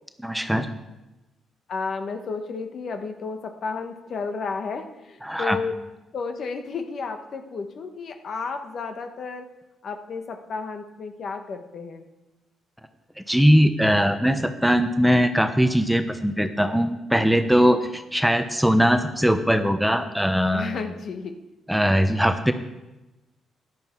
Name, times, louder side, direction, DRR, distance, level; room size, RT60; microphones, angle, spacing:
voice 1, 0.2-0.7 5.2-5.6 13.3-20.7 21.7-22.5, equal, ahead, 8 dB, 0.9 m, -20 dB
voice 2, 1.7-5.7 6.1-9.5 9.8-12.0 20.5-21.3, left 4 dB, 55° left, 6 dB, 1.3 m, -32 dB
14.0 x 11.0 x 4.6 m, 1.0 s
cardioid pair, 90°, 0 cm